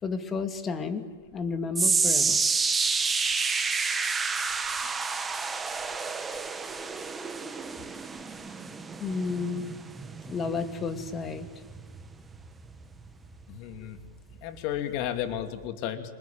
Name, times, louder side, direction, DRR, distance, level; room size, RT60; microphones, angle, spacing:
voice 1, 0.0-2.4 9.0-9.7 10.3-11.5, left 4 dB, 25° left, 8 dB, 2.4 m, -32 dB
sound 1, 1.7-14.1 14.4-14.7 15.4-15.5, right 4 dB, 15° right, 1.8 m, -30 dB
voice 2, 13.5-14.0 14.4-16.0, left 10 dB, 50° left, 8 dB, 2.5 m, -33 dB
25.0 x 20.5 x 9.3 m, 1.4 s
hypercardioid pair, 110°, 0 cm